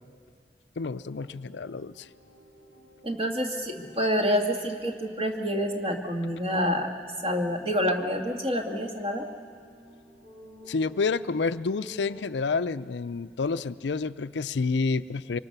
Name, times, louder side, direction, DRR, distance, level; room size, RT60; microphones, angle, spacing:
voice 1, 0.8-1.9 10.7-15.4, left 4 dB, 75° left, 13 dB, 0.5 m, -29 dB
sound 1, 1.0-12.3, equal, 60° right, 6.5 m, -52 dB
voice 2, 3.0-6.9 7.2-9.3, equal, 30° right, 2 dB, 2.1 m, -27 dB
25.5 x 24.0 x 6.8 m, 2.1 s
head